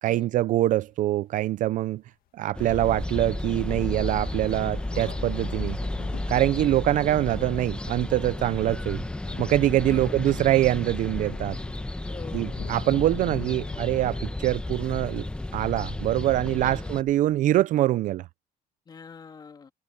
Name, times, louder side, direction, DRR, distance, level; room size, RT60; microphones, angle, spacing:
voice 1, 0.0-2.0 2.4-5.8 6.3-9.0 9.4-11.6 12.3-15.3 15.5-18.2, right 14 dB, 50° right, 0.4 m, -24 dB
sound 1, 0.9-1.0 1.6-1.7 3.0-3.1 3.4-17.4, left 13 dB, 60° left, 2.1 m, -46 dB
sound 2, 2.5-17.0, left 1 dB, 5° left, 1.0 m, -33 dB
voice 2, 9.8-10.2 12.0-12.7 16.6-16.8 18.9-19.7, left 5 dB, 25° left, 3.1 m, -44 dB
cardioid pair, 160°, 17 cm